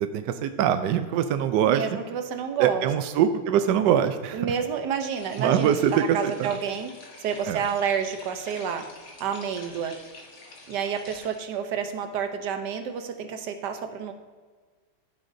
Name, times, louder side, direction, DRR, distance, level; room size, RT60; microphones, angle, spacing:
voice 1, 0.0-2.0 2.6-4.5 5.4-6.6 7.4-7.6, right 9 dB, 80° right, 9 dB, 0.9 m, -23 dB
voice 2, 1.7-2.9 4.3-6.9 7.2-8.8 9.2-9.9 10.7-14.1, right 7 dB, 60° right, 7 dB, 1.2 m, -29 dB
sound 1, 5.1-11.4, left 2 dB, 45° left, 1.8 m, -47 dB
14.5 x 7.8 x 2.7 m, 1.5 s
omnidirectional pair, 2.4 m